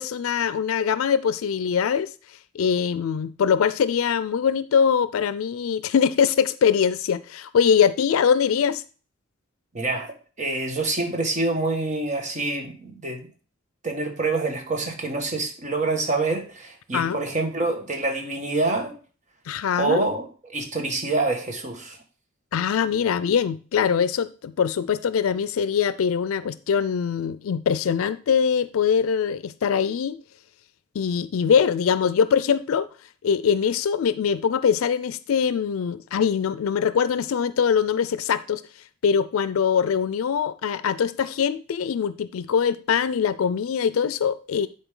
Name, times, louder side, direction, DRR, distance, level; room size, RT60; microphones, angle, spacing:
voice 1, 0.0-2.1 2.5-8.8 16.9-17.2 19.5-20.0 22.5-30.2 30.9-32.9 33.2-38.6 39.0-44.7, left 7 dB, 90° left, 16 dB, 0.4 m, -22 dB
voice 2, 9.7-10.1 10.4-13.3 13.8-19.0 19.8-22.0, right 3 dB, 35° right, 3 dB, 1.5 m, -26 dB
10.0 x 4.3 x 3.7 m, 0.38 s
head